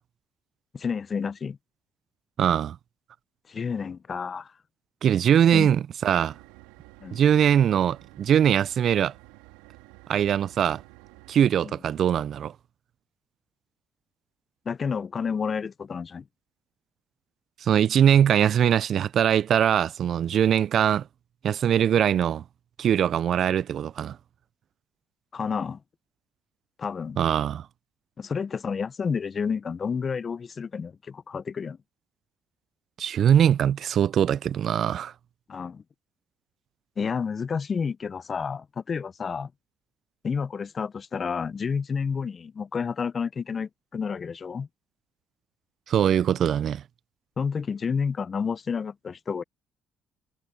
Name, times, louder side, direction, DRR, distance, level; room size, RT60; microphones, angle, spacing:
voice 1, 0.7-1.6 3.5-4.5 5.5-5.7 7.0-7.2 11.6-11.7 14.6-16.2 25.3-25.8 26.8-27.2 28.2-31.8 35.5-35.8 37.0-39.5 40.2-44.7 47.4-49.4, left 6 dB, 45° left, 0.9 m, -30 dB
voice 2, 2.4-2.8 5.0-6.3 7.1-9.1 10.1-10.8 11.3-12.5 17.6-21.1 21.4-22.4 22.8-24.2 27.2-27.7 33.0-35.1 45.9-46.8, right 9 dB, 60° right, 0.4 m, -22 dB
sound 1, 6.1-11.4, right 21 dB, 85° right, 2.8 m, -51 dB
hypercardioid pair, 55°, 0 cm